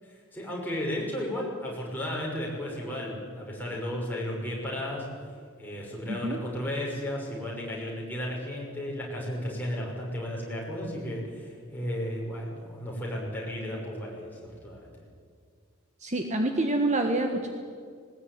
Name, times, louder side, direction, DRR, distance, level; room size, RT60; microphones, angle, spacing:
voice 1, 0.0-5.1 5.6-14.9, left 1 dB, 10° left, -3 dB, 6.0 m, -34 dB
voice 2, 6.1-6.4 16.0-17.5, right 2 dB, 35° right, 4 dB, 1.6 m, -27 dB
19.5 x 19.5 x 9.7 m, 2.1 s
head